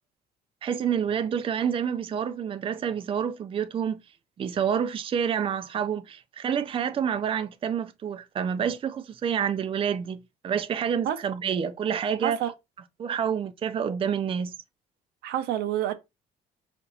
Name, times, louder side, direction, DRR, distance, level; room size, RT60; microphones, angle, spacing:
voice 1, 0.6-4.0 4.4-12.4 13.0-14.5, right 8 dB, 30° right, 0.5 m, -28 dB
voice 2, 12.2-12.5 15.2-15.9, right 11 dB, 80° right, 0.7 m, -28 dB
4.4 x 2.8 x 3.8 m
cardioid pair, 110°, 17 cm